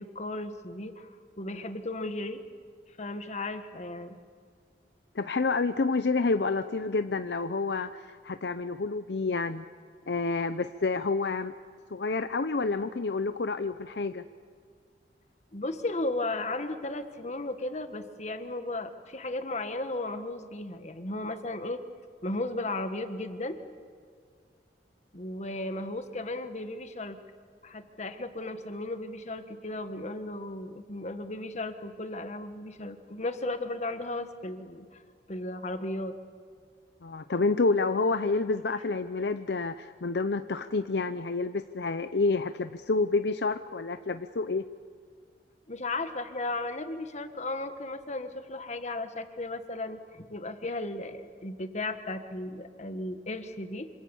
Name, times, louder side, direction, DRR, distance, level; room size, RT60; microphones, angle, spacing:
voice 1, 0.0-2.4 3.0-4.2 15.5-21.8 22.2-23.6 25.1-27.2 27.6-35.0 35.3-36.1 45.7-53.9, left 2 dB, 40° left, 8 dB, 1.6 m, -35 dB
voice 2, 5.1-9.6 10.1-11.5 11.9-14.2 37.0-44.6, left 3 dB, 70° left, 10 dB, 0.7 m, -29 dB
26.5 x 26.0 x 7.1 m, 2.1 s
head